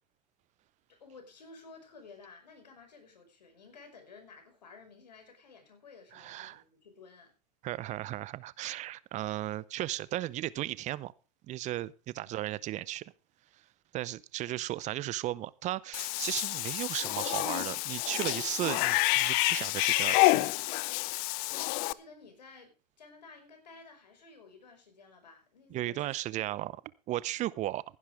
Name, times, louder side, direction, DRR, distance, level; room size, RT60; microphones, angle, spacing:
voice 1, 0.9-7.3 9.1-9.2 12.2-12.5 21.5-26.4, left 4 dB, 80° left, 5.3 m, -54 dB
voice 2, 6.1-6.6 7.6-11.1 11.5-13.0 13.9-20.5 25.7-26.8 27.1-27.8, right 15 dB, 35° right, 0.7 m, -35 dB
Cat / Bathtub (filling or washing), 15.9-21.9, left 22 dB, 45° left, 0.6 m, -28 dB
16.0 x 11.0 x 3.5 m
hypercardioid pair, 95°, 21 cm